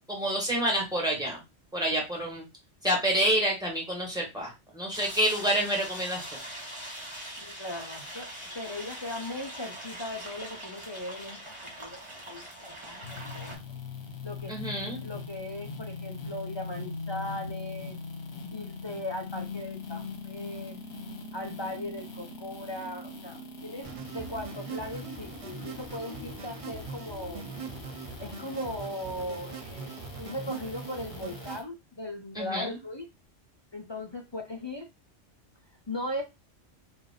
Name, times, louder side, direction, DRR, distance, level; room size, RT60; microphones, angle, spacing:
voice 1, 0.1-1.4 1.7-2.4 2.8-6.4 14.5-15.0 32.3-32.8, right 1 dB, 5° right, -2 dB, 1.4 m, -28 dB
sound 1, 4.9-13.6, right 1 dB, 25° right, 1.6 m, -42 dB
voice 2, 7.4-13.8 14.2-18.0 18.5-20.8 21.3-27.6 28.2-33.1 33.7-34.9 35.9-36.2, left 1 dB, 45° left, 4 dB, 0.3 m, -38 dB
sound 2, 13.0-31.6, left 4 dB, 65° left, 1.1 m, -42 dB
sound 3, 23.8-31.6, right 5 dB, 50° right, 0.4 m, -41 dB
3.2 x 2.5 x 3.8 m, 0.23 s
omnidirectional pair, 1.2 m